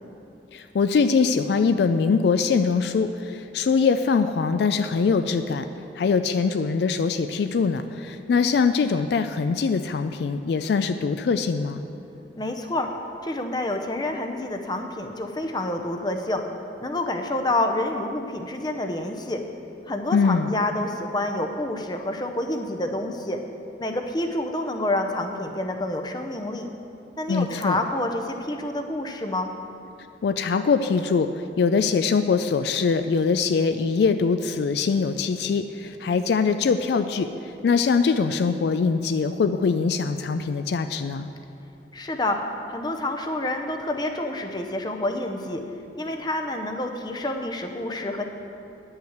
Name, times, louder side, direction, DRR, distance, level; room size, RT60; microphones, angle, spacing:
voice 1, 0.5-5.7 6.0-11.8 20.1-20.5 27.3-27.8 30.2-31.3 31.6-37.3 37.6-41.3, left 5 dB, 65° left, 9 dB, 0.3 m, -22 dB
voice 2, 12.4-12.9 13.2-16.4 16.8-19.4 19.9-23.4 23.8-26.7 27.2-29.5 41.9-42.4 42.7-45.6 46.0-48.2, left 1 dB, 20° left, 5 dB, 0.6 m, -28 dB
10.5 x 5.6 x 7.8 m, 2.8 s
head